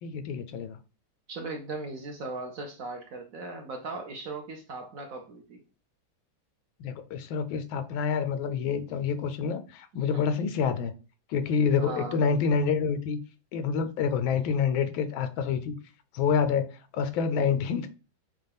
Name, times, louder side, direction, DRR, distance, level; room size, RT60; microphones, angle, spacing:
voice 1, 0.0-0.8 6.8-10.9 11.3-13.2 13.5-15.7 16.1-16.7 16.9-17.9, left 6 dB, 90° left, 10 dB, 1.4 m, -27 dB
voice 2, 1.3-5.6 10.1-10.2 11.8-12.2, right 3 dB, 60° right, 3 dB, 0.9 m, -38 dB
6.6 x 2.3 x 3.5 m, 0.33 s
omnidirectional pair, 2.1 m